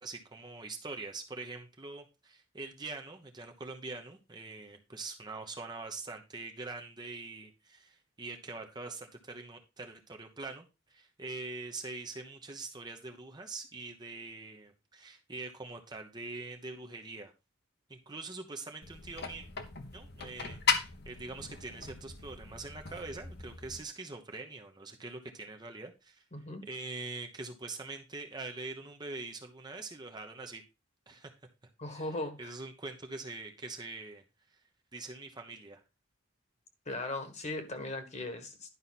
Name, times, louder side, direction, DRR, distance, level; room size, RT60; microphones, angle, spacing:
voice 1, 0.0-17.3 17.9-19.5 19.9-26.2 26.6-30.6 31.1-31.3 31.9-34.2 34.5-34.6 34.9-35.8, right 3 dB, 20° right, 0.9 m, -44 dB
sound 1, 18.8-23.8, left 5 dB, 55° left, 1.2 m, -37 dB
voice 2, 26.3-26.6 31.8-32.5 36.8-38.7, left 2 dB, 35° left, 1.6 m, -38 dB
11.0 x 5.6 x 4.2 m
head